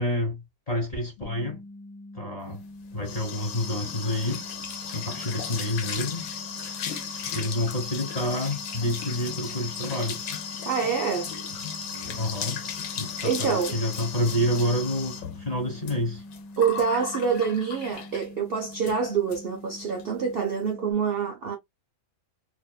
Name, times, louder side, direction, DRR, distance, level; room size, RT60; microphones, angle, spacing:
voice 1, 0.0-1.6 2.1-2.7 2.9-4.5 4.9-6.3 7.3-10.2 11.9-12.6 13.0-16.2, left 1 dB, 30° left, 1.0 m, -28 dB
sound 1, 1.2-20.9, left 1 dB, 65° left, 0.8 m, -44 dB
sound 2, 2.6-18.3 18.7-19.0 19.3-19.4 19.7-20.0, left 6 dB, 85° left, 1.1 m, -36 dB
voice 2, 10.7-11.3 13.2-13.8 16.6-21.6, right 6 dB, 60° right, 0.6 m, -26 dB
2.5 x 2.5 x 2.2 m
omnidirectional pair, 1.5 m